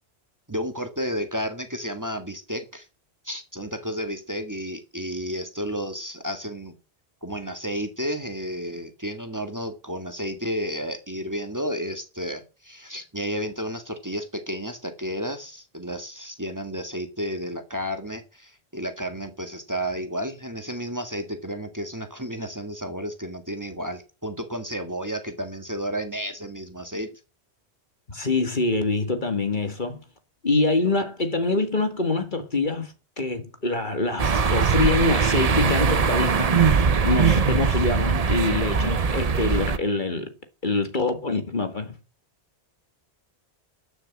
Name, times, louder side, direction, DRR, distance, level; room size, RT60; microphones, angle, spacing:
voice 1, 0.5-2.9 3.2-6.8 7.2-27.1, equal, 15° right, 1.9 m, -32 dB
voice 2, 28.1-30.0 30.4-36.6 37.0-40.3 40.6-42.0, left 3 dB, 45° left, 2.0 m, -25 dB
sound 1, 34.2-39.8, right 5 dB, 40° right, 0.8 m, -21 dB
13.0 x 6.5 x 8.4 m
omnidirectional pair, 1.1 m